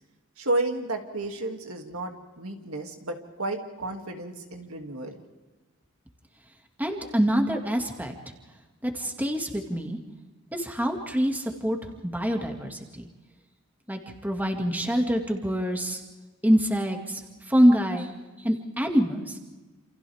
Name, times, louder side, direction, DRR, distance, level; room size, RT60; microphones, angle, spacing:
voice 1, 0.4-5.2, right 2 dB, 75° right, 3 dB, 2.6 m, -32 dB
voice 2, 6.8-8.1 8.8-10.0 10.5-11.8 12.0-13.1 13.9-16.0 16.4-18.1 18.4-19.4, equal, 10° right, 2 dB, 2.2 m, -25 dB
28.5 x 28.5 x 3.6 m, 1.2 s
head